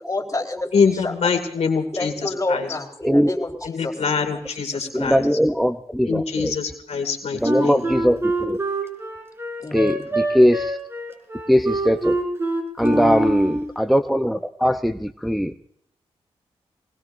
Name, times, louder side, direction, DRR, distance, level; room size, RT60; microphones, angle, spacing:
voice 1, 0.1-1.4 2.0-4.0 4.3-4.4 4.7-5.1 9.6-10.0 12.9-13.3, left 2 dB, 30° left, 1 dB, 4.0 m, -30 dB
voice 2, 0.7-2.7 3.6-5.2 6.1-7.9, left 5 dB, 70° left, 6 dB, 2.3 m, -24 dB
voice 3, 3.0-3.4 4.9-6.5 7.4-8.6 9.7-10.8 11.5-12.1 12.8-15.5, equal, ahead, 6 dB, 0.7 m, -20 dB
Wind instrument woodwind instrument, 7.4-13.7, right 1 dB, 25° right, 5.2 m, -25 dB
23.0 x 20.0 x 2.6 m, 0.67 s
cardioid pair, 75°, 11 cm